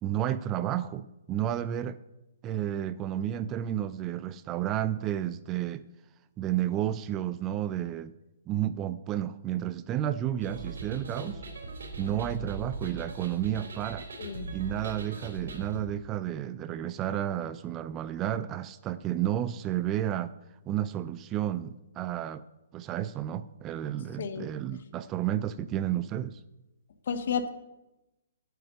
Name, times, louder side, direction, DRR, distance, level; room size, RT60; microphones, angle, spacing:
voice 1, 0.0-2.0 2.4-5.8 6.4-8.1 8.5-11.4 12.0-14.1 14.5-20.3 20.7-22.4 22.7-26.4, right 11 dB, 15° right, 14 dB, 0.3 m, -31 dB
sound 1, 10.4-15.8, right 3 dB, 75° right, 3.4 m, -40 dB
voice 2, 14.2-14.6 24.2-24.5 27.1-27.5, left 6 dB, 55° left, 9 dB, 1.3 m, -31 dB
9.2 x 8.4 x 7.9 m, 0.97 s
hypercardioid pair, 170°, 0 cm